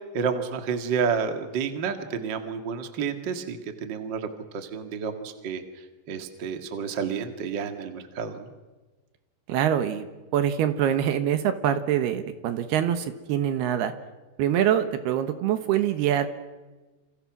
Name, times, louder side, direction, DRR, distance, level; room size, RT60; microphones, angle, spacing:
voice 1, 0.1-4.3 4.5-5.6 6.1-8.5, right 6 dB, 40° right, 6 dB, 1.7 m, -30 dB
voice 2, 9.5-10.1 10.3-13.9 14.4-16.3, right 10 dB, 70° right, 9 dB, 3.1 m, -24 dB
28.0 x 28.0 x 6.2 m, 1.2 s
omnidirectional pair, 5.0 m